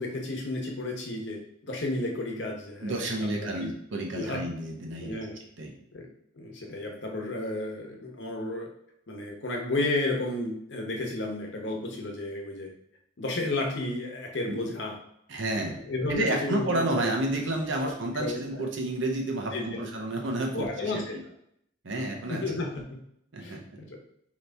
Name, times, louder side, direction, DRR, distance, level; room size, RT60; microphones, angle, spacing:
voice 1, 0.0-3.7 4.1-4.4 5.0-5.4 5.9-6.1 6.4-8.7 9.1-12.7 13.2-15.0 15.6-17.1 17.8-17.9 18.2-18.7 19.5-19.8 20.5-21.2 22.3-23.0 23.4-24.0, left 2 dB, 65° left, 0 dB, 0.9 m, -32 dB
voice 2, 2.8-5.2 5.6-5.7 14.5-14.6 15.3-15.8 16.1-21.0 21.8-22.4 23.3-23.6, right 1 dB, 75° right, 1 dB, 0.8 m, -30 dB
4.0 x 3.0 x 3.3 m, 0.73 s
head